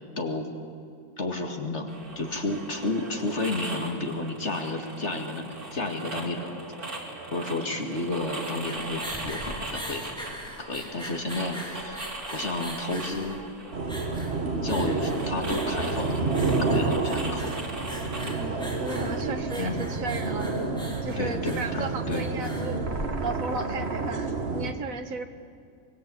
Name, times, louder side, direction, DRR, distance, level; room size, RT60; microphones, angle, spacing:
voice 1, 0.2-0.5 1.2-6.6 7.3-10.1 10.6-13.4 14.6-17.5 19.6-19.8 21.2-22.3, left 2 dB, 50° left, 3 dB, 2.4 m, -31 dB
sound 1, 1.9-19.4, right 2 dB, 90° right, 3.7 m, -40 dB
sound 2, 8.2-23.5, equal, 5° left, 3.7 m, -41 dB
sound 3, 13.7-24.7, right 3 dB, 45° right, 1.8 m, -29 dB
voice 2, 18.3-20.5 21.0-22.9 23.2-25.3, right 4 dB, 65° right, 7 dB, 1.7 m, -35 dB
24.0 x 22.0 x 8.5 m, 2.3 s
omnidirectional pair, 1.5 m